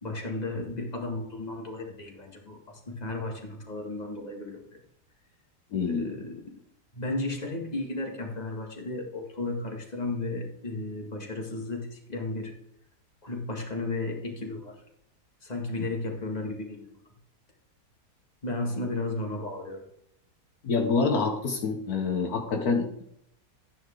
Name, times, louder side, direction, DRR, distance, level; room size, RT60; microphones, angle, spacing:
voice 1, 0.0-4.7 5.9-6.6 6.9-12.5 13.2-14.8 15.4-16.8 18.4-19.8, left 2 dB, 25° left, 0 dB, 2.1 m, -34 dB
voice 2, 5.7-6.1 20.6-23.0, left 4 dB, 70° left, 3 dB, 1.5 m, -27 dB
13.0 x 9.5 x 3.8 m, 0.73 s
omnidirectional pair, 1.7 m